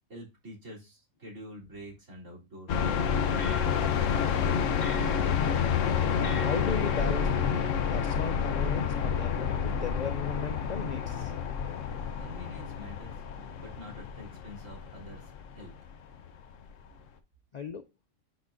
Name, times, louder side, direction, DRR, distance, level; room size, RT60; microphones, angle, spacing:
voice 1, 0.1-3.5 12.2-13.1 13.6-15.7, equal, 70° right, 3.7 m, -47 dB
FX Naru Flux, 2.7-16.6, left 7 dB, 70° left, 1.1 m, -29 dB
sound 1, 2.8-8.2, left 1 dB, 40° left, 2.1 m, -40 dB
voice 2, 6.3-7.3 7.9-11.3 17.5-17.9, left 6 dB, 55° left, 0.4 m, -36 dB
10.0 x 6.1 x 2.6 m
omnidirectional pair, 1.4 m